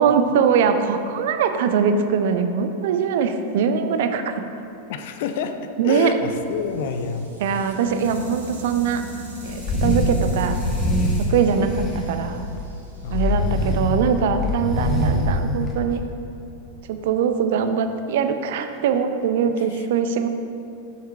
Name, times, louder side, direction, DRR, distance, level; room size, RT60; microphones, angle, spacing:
voice 1, 0.0-4.4 5.8-6.2 7.4-9.0 9.4-10.6 11.2-12.5 13.1-16.0 16.9-20.3, right 6 dB, 55° right, 8 dB, 0.5 m, -22 dB
voice 2, 4.9-5.6 5.8-7.3 9.8-10.3 13.0-13.6 19.7-19.8, left 5 dB, 55° left, 8 dB, 0.5 m, -28 dB
sound 1, 6.3-14.4, equal, 70° right, 1.6 m, -40 dB
sound 2, 9.5-10.1 10.4-12.6 13.1-16.0, left 1 dB, 25° left, 1.1 m, -24 dB
7.3 x 5.7 x 4.6 m, 2.6 s
figure-of-eight pair, 90°, 0 cm